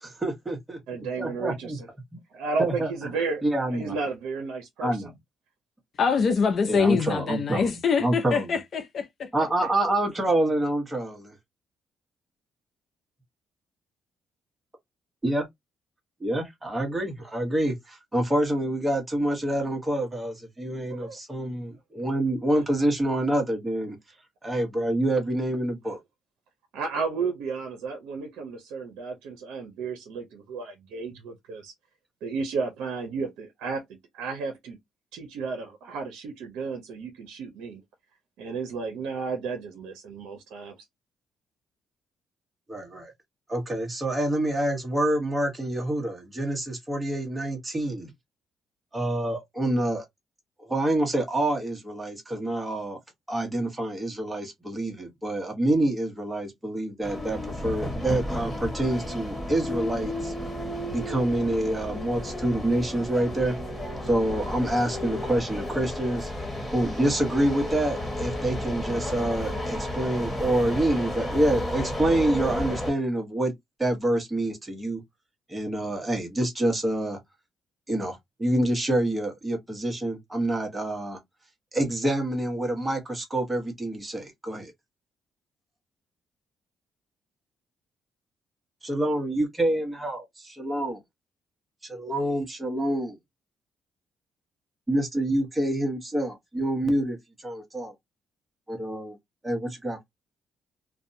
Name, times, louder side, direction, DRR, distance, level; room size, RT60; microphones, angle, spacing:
voice 1, 0.0-1.8 2.6-3.1 3.4-3.9 4.8-5.1 6.7-7.7 8.0-8.6 9.3-11.4 15.2-15.4 16.2-24.0 24.4-26.0 42.7-43.1 43.5-48.1 48.9-50.0 50.6-53.0 53.3-60.3 60.9-63.5 64.0-66.3 66.7-73.5 73.8-75.0 75.5-77.2 77.9-81.2 81.7-84.7 88.8-91.0 91.8-93.2 94.9-97.2 97.4-97.9 98.7-99.2 99.4-100.0, right 1 dB, 15° right, 1.1 m, -27 dB
voice 2, 0.9-1.9 2.3-3.4 3.7-5.1 20.9-21.2 26.7-31.7 32.2-33.8 34.1-34.8 35.1-37.8 38.4-40.8, right 4 dB, 90° right, 0.6 m, -33 dB
voice 3, 6.0-9.3, left 5 dB, 55° left, 0.5 m, -24 dB
sound 1, 57.0-72.9, left 1 dB, 10° left, 1.3 m, -32 dB
2.6 x 2.1 x 2.6 m
cardioid pair, 90°, 0 cm